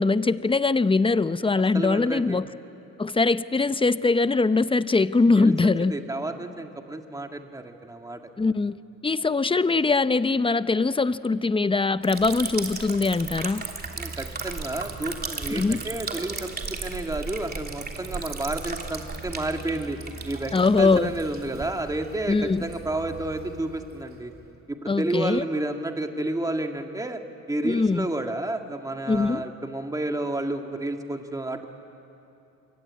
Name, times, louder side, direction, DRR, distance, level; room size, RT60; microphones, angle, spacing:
voice 1, 0.0-2.5 3.0-6.0 8.4-8.8 9.0-13.6 15.5-15.8 20.5-21.1 22.3-22.7 24.9-25.4 27.6-28.1 29.1-29.4, left 3 dB, 15° left, 14 dB, 0.7 m, -22 dB
voice 2, 1.7-2.4 5.4-5.5 5.8-8.2 14.0-20.0 20.2-24.3 24.7-27.2 27.5-31.7, right 2 dB, 10° right, 4 dB, 1.8 m, -31 dB
Liquid, 12.0-24.5, right 4 dB, 30° right, 3.0 m, -36 dB
25.5 x 23.5 x 9.5 m, 2.9 s
cardioid pair, 90°, 30 cm